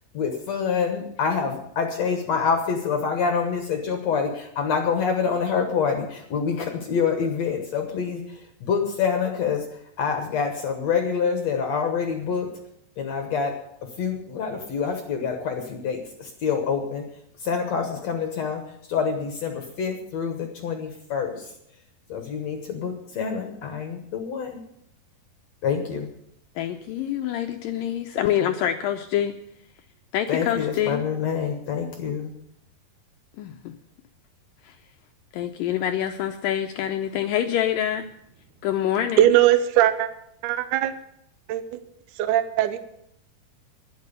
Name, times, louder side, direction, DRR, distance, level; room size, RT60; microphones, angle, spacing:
voice 1, 0.1-12.5 13.0-17.0 17.4-21.5 22.1-24.6 25.6-26.1 30.3-32.3, left 6 dB, 65° left, 4 dB, 1.7 m, -26 dB
voice 2, 26.6-29.4 30.1-31.0 33.4-33.7 34.6-34.8 35.3-38.1 38.6-39.3, left 10 dB, 85° left, 6 dB, 2.0 m, -26 dB
voice 3, 39.2-40.1 40.4-40.9 41.5-41.8 42.2-42.8, right 12 dB, 75° right, 10 dB, 1.9 m, -20 dB
12.5 x 10.5 x 6.8 m, 0.75 s
omnidirectional pair, 4.8 m